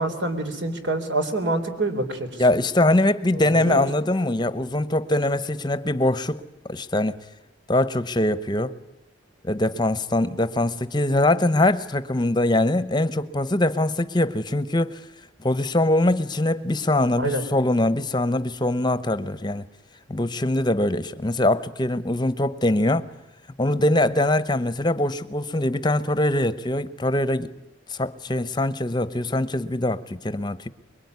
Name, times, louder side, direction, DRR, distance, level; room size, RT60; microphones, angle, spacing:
voice 1, 0.0-2.4 3.3-3.9 17.2-17.4, right 2 dB, 70° right, 3.7 m, -26 dB
voice 2, 2.4-6.4 6.7-7.2 7.7-8.8 9.4-15.0 15.4-19.6 20.1-23.1 23.6-27.5 27.9-30.7, left 1 dB, 25° left, 0.9 m, -22 dB
24.5 x 22.5 x 9.6 m
head